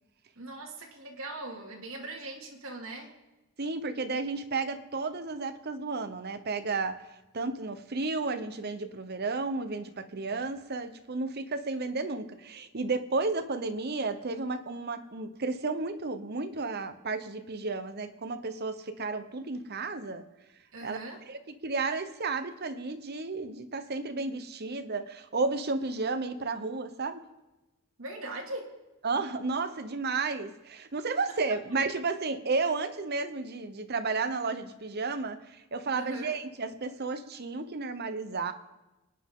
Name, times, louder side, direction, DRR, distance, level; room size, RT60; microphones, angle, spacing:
voice 1, 0.4-3.2 20.7-21.2 28.0-28.8 31.5-31.6 35.9-36.4, right 2 dB, 75° right, 0 dB, 2.6 m, -40 dB
voice 2, 3.6-7.0 7.3-20.3 20.8-21.0 21.3-27.2 29.0-38.5, right 3 dB, 50° right, 10 dB, 1.0 m, -32 dB
29.5 x 9.9 x 3.8 m, 1.1 s
head